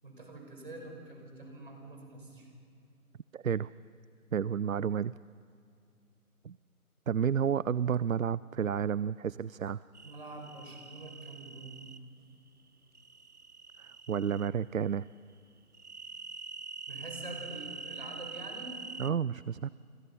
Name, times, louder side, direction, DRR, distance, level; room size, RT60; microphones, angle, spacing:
voice 1, 0.0-2.5 10.0-11.7 16.9-18.8, right 2 dB, 35° right, 2 dB, 5.3 m, -45 dB
voice 2, 3.3-3.7 4.3-5.1 6.4-6.6 7.1-9.8 13.8-15.1 19.0-19.7, right 7 dB, 65° right, 19 dB, 0.5 m, -31 dB
sound 1, 9.9-12.0 12.9-14.5 15.7-19.1, right 4 dB, 85° right, 1.5 m, -45 dB
30.0 x 25.5 x 5.5 m, 2.4 s
figure-of-eight pair, 180°, 44 cm